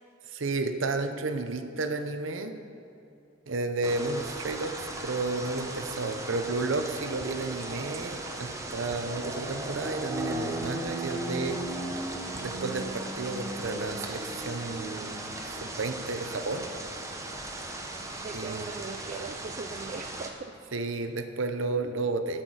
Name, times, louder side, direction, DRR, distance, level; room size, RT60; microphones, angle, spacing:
voice 1, 0.3-2.5 3.5-11.6 12.4-16.7 18.3-18.7 20.7-22.4, right 3 dB, 70° right, 8 dB, 0.7 m, -32 dB
sound 1, 3.3-3.7 4.9-19.7, left 2 dB, 40° left, 1.1 m, -56 dB
sound 2, 3.8-20.3, right 2 dB, 15° right, 0.8 m, -36 dB
sound 3, 6.8-6.9 7.2-7.3 8.5-8.6 8.9-9.0 10.2-10.3 10.6-10.7 11.9-12.0 12.3-12.4 13.6-13.7, left 2 dB, 90° left, 1.0 m, -49 dB
voice 2, 17.9-20.5, right 4 dB, 40° right, 6 dB, 0.4 m, -40 dB
12.0 x 5.9 x 6.3 m, 2.7 s
head